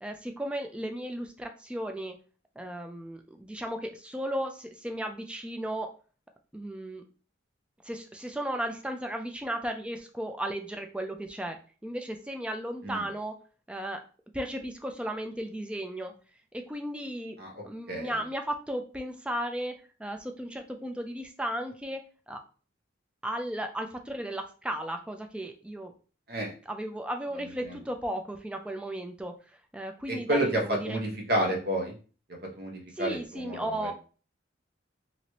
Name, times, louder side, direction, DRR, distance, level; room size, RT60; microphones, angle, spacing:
voice 1, 0.0-2.1 2.6-5.9 6.5-7.0 7.9-11.6 11.8-13.3 13.7-14.0 14.3-16.1 16.5-17.3 17.6-19.7 20.0-22.0 22.3-22.4 23.2-25.9 26.7-29.3 29.7-31.0 33.0-33.9, right 1 dB, 5° right, 5 dB, 0.3 m, -35 dB
voice 2, 30.1-31.9 32.6-33.9, right 1 dB, 50° right, 1 dB, 0.9 m, -30 dB
3.0 x 2.9 x 2.8 m, 0.38 s
head